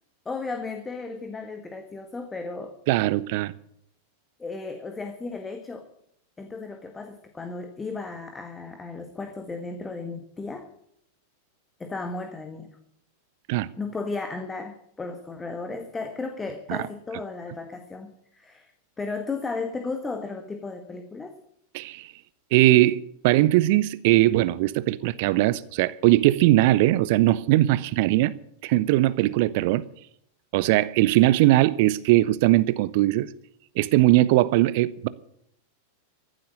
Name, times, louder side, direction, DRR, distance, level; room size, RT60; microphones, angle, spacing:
voice 1, 0.2-2.7 4.4-5.9 6.4-10.7 11.8-12.7 13.8-18.7 19.0-21.4, left 3 dB, 15° left, 1.5 m, -34 dB
voice 2, 2.9-3.5 13.5-13.7 16.7-16.8 21.7-22.1 22.5-28.3 28.6-29.8 30.5-33.3 33.8-35.1, right 16 dB, 50° right, 0.6 m, -20 dB
15.0 x 7.9 x 9.9 m
figure-of-eight pair, 90°, 0 cm